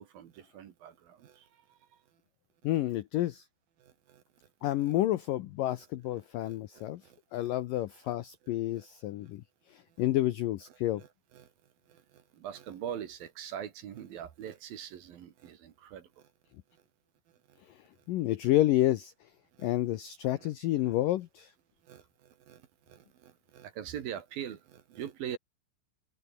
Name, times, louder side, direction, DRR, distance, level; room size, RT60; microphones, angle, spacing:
voice 1, 0.0-1.8 3.8-4.5 6.4-7.5 8.7-8.9 11.0-11.1 11.3-11.5 11.9-16.3 17.5-17.6 19.5-19.7 20.4-20.5 20.8-20.9 21.8-25.4, right 9 dB, 60° right, 3.3 m, -43 dB
voice 2, 2.6-3.5 4.6-7.0 7.3-9.4 9.7-11.0 18.1-19.1 19.6-21.5, left 15 dB, 80° left, 2.0 m, -29 dB
omnidirectional pair, 5.1 m